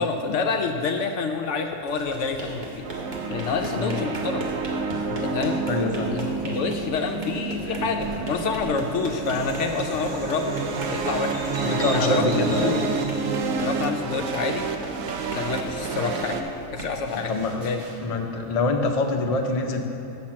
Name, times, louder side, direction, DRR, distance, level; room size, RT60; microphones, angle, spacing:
voice 1, 0.0-2.9 3.3-4.4 5.1-5.6 6.0-10.6 10.9-11.5 11.9-12.9 13.6-14.7 15.3-16.4 16.7-17.8, left 4 dB, 70° left, 5 dB, 0.8 m, -28 dB
sound 1, 1.7-18.7, right 1 dB, 35° right, 1.2 m, -38 dB
sound 2, 2.8-16.4, right 4 dB, 70° right, 1.0 m, -29 dB
voice 2, 5.7-6.2 11.6-12.8 17.3-17.7 18.0-19.8, left 2 dB, 45° left, 3 dB, 0.5 m, -25 dB
Bird vocalization bird call bird song, 7.6-13.8, right 1 dB, 10° right, 2.0 m, -40 dB
6.3 x 6.0 x 7.3 m, 2.9 s
omnidirectional pair, 1.5 m